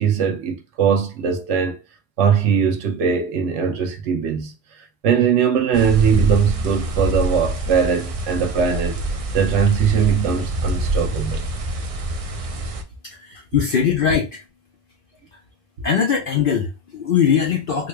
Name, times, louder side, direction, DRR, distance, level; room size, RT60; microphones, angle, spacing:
voice 1, 0.0-1.8 2.2-9.0 9.3-11.4, right 7 dB, 80° right, 1.0 m, -20 dB
sound 1, 5.7-12.8, right 1 dB, 50° right, 0.4 m, -25 dB
voice 2, 13.0-14.4 15.3-15.4 15.8-17.9, left 7 dB, 55° left, 0.7 m, -21 dB
4.1 x 2.2 x 3.1 m
omnidirectional pair, 1.2 m